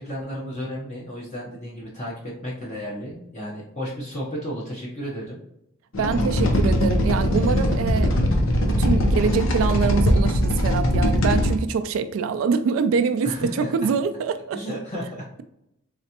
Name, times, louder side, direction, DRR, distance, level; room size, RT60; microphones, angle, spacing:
voice 1, 0.0-5.4 13.2-13.7 14.5-15.2, equal, 35° left, 0.9 m, -33 dB
sound 1, 5.9-11.5, equal, 65° left, 0.7 m, -21 dB
voice 2, 6.0-8.3 8.6-14.6, right 5 dB, 65° right, 0.3 m, -24 dB
4.0 x 3.3 x 2.8 m
head